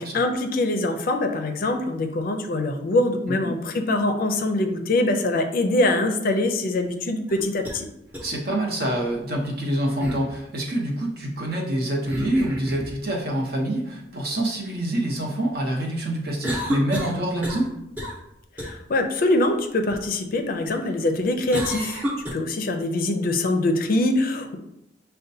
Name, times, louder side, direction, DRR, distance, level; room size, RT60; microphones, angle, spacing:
voice 1, 0.0-7.8 18.6-22.0 22.3-24.6, left 2 dB, 50° left, 6 dB, 0.4 m, -23 dB
sound 1, 7.3-7.8 8.1-8.2 10.0-10.3 12.1-13.0 16.4-17.7 18.0-18.2 18.6-18.7 21.5-22.3, equal, 10° right, 0.8 m, -30 dB
voice 2, 8.2-17.7, right 1 dB, 55° right, 0 dB, 0.8 m, -26 dB
6.3 x 2.2 x 2.7 m, 0.80 s
head